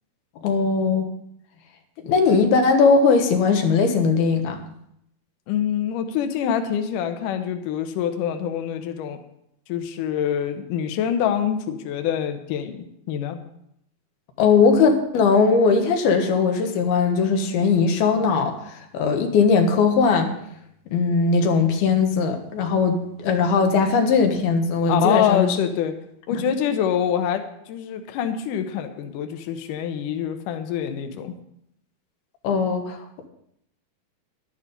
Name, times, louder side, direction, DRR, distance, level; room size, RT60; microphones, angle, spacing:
voice 1, 0.4-1.1 2.0-4.6 14.4-20.3 20.9-25.6 26.3-26.4 32.4-33.0, left 5 dB, 90° left, 4 dB, 3.3 m, -19 dB
voice 2, 5.5-9.2 9.7-13.4 24.9-25.9 26.3-27.4 27.7-31.3, left 9 dB, 70° left, 7 dB, 2.3 m, -25 dB
11.5 x 11.5 x 5.3 m, 0.75 s
omnidirectional pair, 4.3 m